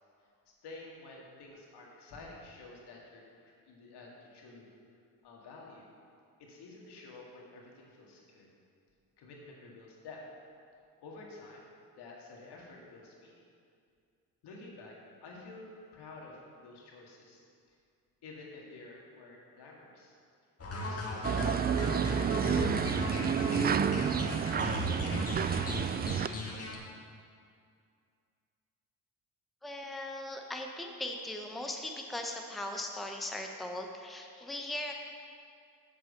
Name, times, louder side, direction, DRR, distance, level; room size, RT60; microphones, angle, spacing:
voice 1, 0.6-4.7 5.2-5.9 6.4-8.5 9.2-10.2 11.0-11.7 11.9-13.4 14.4-17.4 17.7-17.8 18.2-20.1 20.7-22.3 23.0-26.7, left 3 dB, 65° left, -2 dB, 2.1 m, -51 dB
sound 1, 20.6-26.8, left 3 dB, 35° left, 1.9 m, -37 dB
sound 2, 21.2-26.3, right 7 dB, 25° right, 0.3 m, -30 dB
voice 2, 29.6-34.9, left 1 dB, ahead, 2 dB, 1.0 m, -39 dB
7.9 x 6.2 x 6.7 m, 2.3 s
hypercardioid pair, 55°, 44 cm